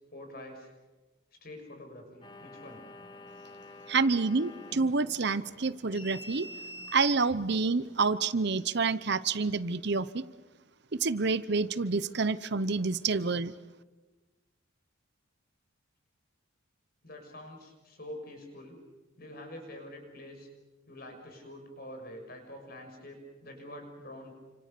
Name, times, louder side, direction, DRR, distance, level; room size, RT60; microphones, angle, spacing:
voice 1, 0.1-0.7 1.4-2.8 17.0-18.8 19.2-20.5 20.9-24.3, left 1 dB, 45° left, 4 dB, 6.3 m, -46 dB
sound 1, 2.2-8.6, left 1 dB, 25° left, 2.5 m, -48 dB
voice 2, 3.9-6.5 6.9-10.2 10.9-13.5, right 4 dB, 55° right, 15 dB, 0.8 m, -28 dB
29.5 x 26.5 x 6.8 m, 1.2 s
head